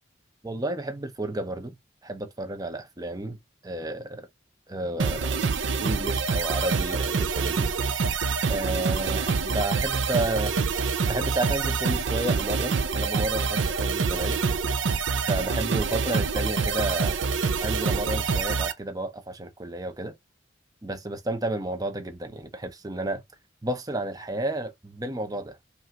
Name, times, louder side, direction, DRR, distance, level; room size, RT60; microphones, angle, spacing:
voice 1, 0.4-1.7 2.0-3.4 3.6-4.3 4.7-5.5 5.8-7.7 8.5-10.7 11.1-14.4 15.3-17.2 17.6-20.1 20.8-23.2 23.6-25.6, right 2 dB, 20° right, 0.6 m, -31 dB
sound 1, 5.0-18.7, right 5 dB, 75° right, 0.6 m, -26 dB
5.4 x 2.5 x 2.8 m
head